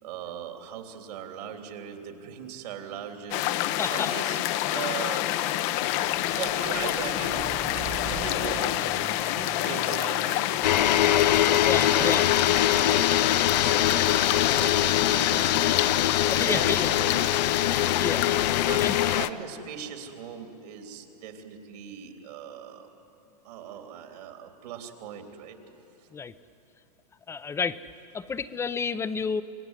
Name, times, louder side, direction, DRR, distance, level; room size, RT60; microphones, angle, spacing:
voice 1, 0.0-4.4 4.7-5.3 6.0-12.2 12.7-17.8 18.6-22.9 23.4-25.6, right 7 dB, 70° right, 5 dB, 3.3 m, -40 dB
sound 1, 3.3-19.3, left 14 dB, 45° left, 0.8 m, -28 dB
voice 2, 3.8-4.1 11.7-12.2 16.3-16.9 17.7-18.2 18.8-18.9 26.1-26.3 27.3-27.8 28.1-29.4, left 5 dB, 10° left, 14 dB, 0.7 m, -30 dB
Truck, 3.8-4.0 4.3-16.9, right 7 dB, 20° right, 0.9 m, -45 dB
sound 2, 10.6-19.3, left 12 dB, 80° left, 0.6 m, -23 dB
26.5 x 19.0 x 9.8 m, 2.9 s
hypercardioid pair, 130°, 21 cm